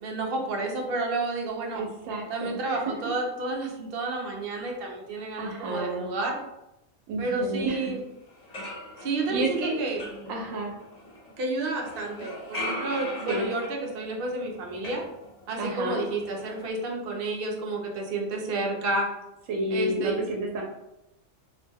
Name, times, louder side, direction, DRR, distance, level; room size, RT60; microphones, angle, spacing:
voice 1, 0.0-1.8 2.3-6.4 7.2-8.0 9.0-10.0 11.4-15.0 15.5-19.1 19.7-20.2, right 2 dB, 60° right, 1 dB, 0.7 m, -30 dB
voice 2, 1.7-2.8 5.4-6.1 7.1-7.9 8.5-8.7 9.3-9.8 10.3-10.7 13.3-13.5 15.6-16.0 19.5-20.6, right 1 dB, 90° right, 0 dB, 1.0 m, -30 dB
sound 1, 7.9-8.0 8.3-11.4 11.8-15.7 16.0-16.7, left 1 dB, 45° left, 0.5 m, -39 dB
2.6 x 2.1 x 3.3 m, 0.89 s
omnidirectional pair, 1.3 m